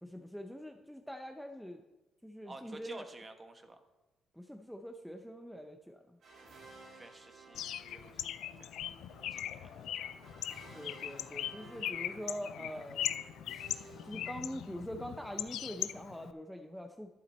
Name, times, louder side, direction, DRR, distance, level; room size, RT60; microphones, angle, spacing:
voice 1, 0.0-1.8 2.2-3.0 4.3-6.2 10.7-13.1 14.0-17.1, equal, ahead, 4 dB, 0.6 m, -44 dB
voice 2, 2.4-3.8 6.9-8.9 9.3-10.3, right 2 dB, 25° right, 7 dB, 1.1 m, -52 dB
sound 1, 6.2-15.1, right 3 dB, 60° right, 2.8 m, -56 dB
Bird, 7.5-16.3, left 11 dB, 80° left, 0.4 m, -40 dB
11.5 x 7.1 x 4.3 m, 1.1 s
cardioid pair, 90°, 0 cm